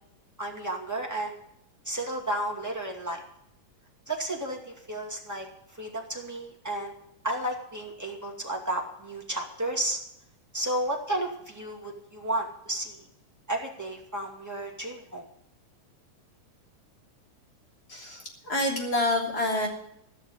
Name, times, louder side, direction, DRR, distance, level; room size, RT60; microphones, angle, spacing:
voice 1, 0.4-1.4 1.8-3.2 4.1-5.5 5.7-6.9 7.2-10.0 10.5-13.0 13.5-15.2, right 1 dB, 5° right, -1 dB, 1.9 m, -32 dB
voice 2, 17.9-19.7, left 1 dB, 30° left, 0 dB, 3.4 m, -27 dB
16.0 x 6.5 x 9.8 m, 0.75 s
omnidirectional pair, 3.7 m